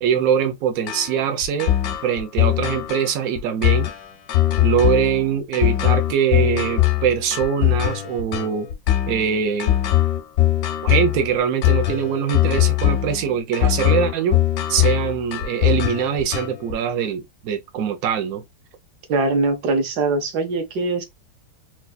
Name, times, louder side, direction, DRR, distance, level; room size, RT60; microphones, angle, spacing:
voice 1, 0.0-1.7 2.0-3.9 4.6-8.7 9.1-9.8 10.8-14.4 14.7-18.4, right 8 dB, 90° right, 0.7 m, -22 dB
sound 1, 0.9-16.7, left 14 dB, 75° left, 0.8 m, -21 dB
voice 2, 19.1-21.0, right 3 dB, 60° right, 1.2 m, -22 dB
4.2 x 2.4 x 2.3 m
omnidirectional pair, 2.4 m